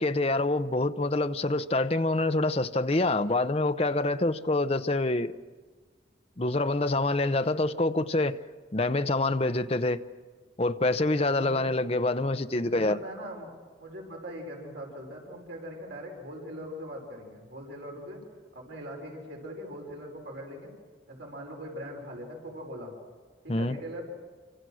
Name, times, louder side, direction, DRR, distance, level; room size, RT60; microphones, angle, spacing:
voice 1, 0.0-5.3 6.4-8.4 8.7-10.0 10.6-13.0 23.5-23.7, left 2 dB, 35° left, 0.8 m, -26 dB
voice 2, 12.6-13.5 13.8-18.2 18.5-20.7 21.1-22.9 23.4-24.0, equal, 80° right, 5.5 m, -41 dB
27.5 x 25.5 x 6.4 m
head